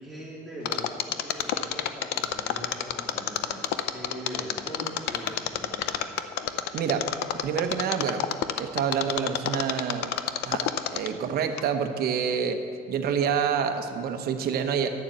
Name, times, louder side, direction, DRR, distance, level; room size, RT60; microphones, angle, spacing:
voice 1, 0.0-6.1, right 1 dB, ahead, -7 dB, 2.8 m, -41 dB
Mechanisms, 0.7-11.2 11.6-11.7, left 11 dB, 85° left, 0.6 m, -28 dB
voice 2, 6.7-7.1 7.4-8.2 8.6-10.1 10.5-12.6 12.9-14.9, right 7 dB, 65° right, 6 dB, 1.0 m, -27 dB
11.0 x 7.2 x 8.0 m, 2.2 s
cardioid pair, 110°, 17 cm